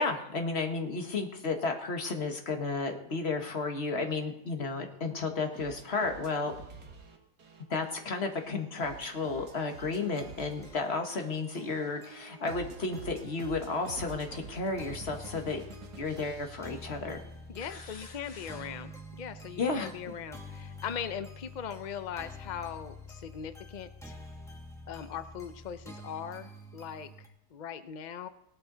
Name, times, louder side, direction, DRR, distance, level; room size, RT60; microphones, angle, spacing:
voice 1, 0.0-6.5 7.7-15.6 16.0-17.2 17.6-18.5 19.6-20.1, left 3 dB, 40° left, 4 dB, 1.6 m, -33 dB
sound 1, 5.5-17.5, right 5 dB, 75° right, 2.1 m, -48 dB
sound 2, 9.8-27.3, left 1 dB, ahead, 1.6 m, -48 dB
voice 2, 17.5-24.1 24.9-28.3, left 8 dB, 70° left, 10 dB, 0.4 m, -40 dB
17.5 x 12.0 x 3.9 m, 0.81 s
omnidirectional pair, 1.7 m